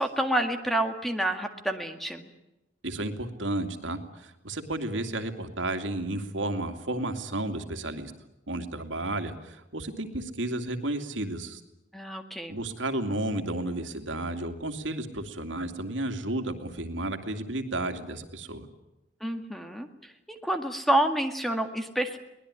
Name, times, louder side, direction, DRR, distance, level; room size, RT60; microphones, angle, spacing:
voice 1, 0.0-2.3 11.9-12.6 19.2-22.2, right 1 dB, ahead, 6 dB, 1.9 m, -28 dB
voice 2, 2.8-8.1 8.5-11.6 12.5-18.7, right 1 dB, 85° right, 6 dB, 2.7 m, -32 dB
23.5 x 19.5 x 10.0 m, 0.93 s
head